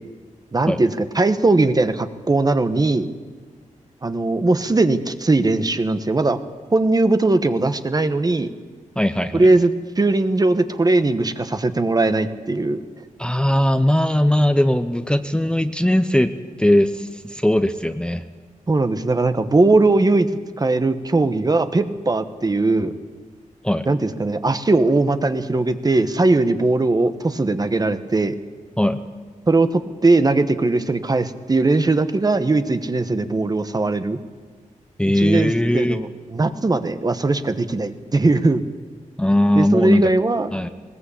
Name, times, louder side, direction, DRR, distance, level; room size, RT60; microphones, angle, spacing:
voice 1, 0.5-3.1 4.0-6.4 6.7-8.5 9.3-12.8 18.7-20.3 20.6-22.9 23.9-28.3 29.5-34.2 35.2-38.6 39.6-40.5, right 2 dB, 30° right, 10 dB, 1.1 m, -19 dB
voice 2, 9.0-9.5 13.2-16.3 16.6-18.2 23.6-23.9 28.8-29.0 35.0-36.0 39.2-40.1 40.5-40.7, left 1 dB, 5° left, 8 dB, 0.8 m, -19 dB
20.5 x 19.5 x 8.4 m, 1.5 s
wide cardioid pair, 115°, 13 cm